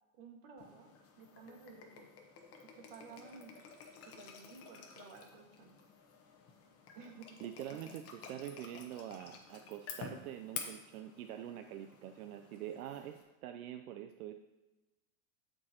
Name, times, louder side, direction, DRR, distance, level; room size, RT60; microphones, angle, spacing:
voice 1, 0.1-0.9 1.2-2.1 2.7-3.5 4.0-5.8 6.9-7.3 7.7-7.9, right 5 dB, 50° right, 2 dB, 1.7 m, -54 dB
sound 1, 0.6-13.2, left 6 dB, 35° left, 1.1 m, -51 dB
voice 2, 7.4-14.3, right 11 dB, 85° right, 6 dB, 0.6 m, -45 dB
13.0 x 4.6 x 2.9 m, 1.1 s
supercardioid pair, 130°, 42 cm